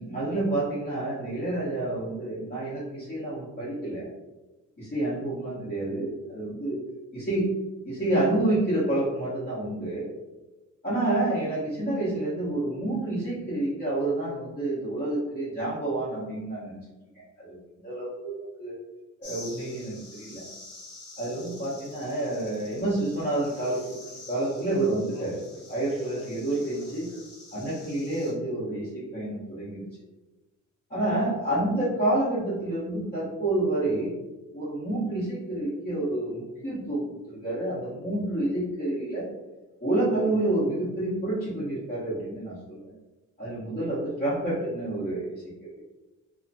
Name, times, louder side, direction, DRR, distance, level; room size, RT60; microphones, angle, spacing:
voice 1, 0.0-4.1 4.8-6.8 7.1-7.5 7.8-10.1 10.8-16.8 17.4-18.7 19.2-20.4 21.2-24.0 24.3-25.4 25.7-27.1 27.5-29.8 30.9-34.1 34.5-39.3 39.8-42.9 43.4-45.7, right 1 dB, 35° left, -12 dB, 1.2 m, -29 dB
sound 1, 19.2-28.3, left 2 dB, 55° left, 0.9 m, -47 dB
2.8 x 2.3 x 2.7 m, 1.1 s
cardioid pair, 125°, 30 cm